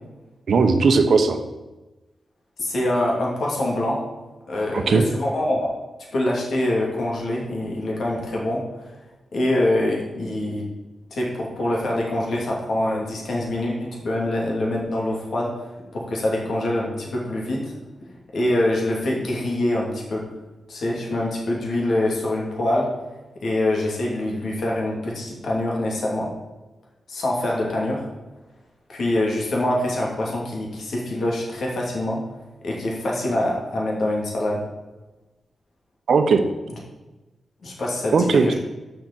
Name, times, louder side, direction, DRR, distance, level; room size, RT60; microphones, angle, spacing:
voice 1, 0.5-1.4 4.7-5.0 36.1-36.5 38.1-38.5, right 4 dB, 65° right, 7 dB, 0.9 m, -17 dB
voice 2, 2.6-4.0 4.5-5.7 6.1-8.6 9.3-10.6 11.1-15.5 15.9-17.7 18.3-20.3 20.7-22.9 23.4-26.3 27.1-28.1 28.9-32.2 32.6-34.6 37.6-38.5, left 1 dB, 65° left, -2 dB, 2.7 m, -24 dB
7.0 x 5.9 x 7.6 m, 1.1 s
cardioid pair, 95°, 0 cm